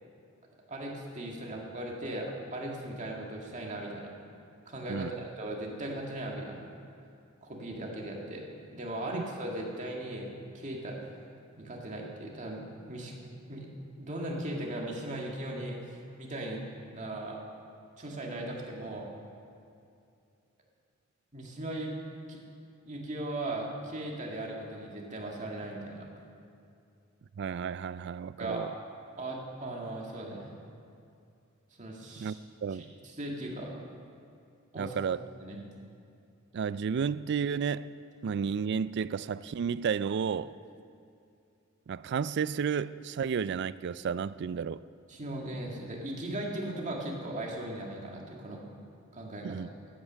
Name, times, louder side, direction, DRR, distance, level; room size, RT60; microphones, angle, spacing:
voice 1, 0.7-4.1 4.7-6.6 7.4-8.4 8.7-11.1 11.6-13.1 13.5-13.7 14.0-16.6 16.9-17.4 18.0-19.1 21.3-21.9 22.3-22.4 22.8-26.1 28.4-28.6 29.2-30.5 31.8-32.4 33.2-33.7 34.7-34.9 35.4-35.6 45.1-48.6 49.1-49.5, right 1 dB, 35° right, 2.1 m, -38 dB
voice 2, 27.4-28.7 32.2-32.9 34.8-35.2 36.5-37.9 38.2-40.6 41.9-44.8 49.4-49.7, right 6 dB, 55° right, 0.3 m, -32 dB
14.5 x 9.0 x 6.3 m
head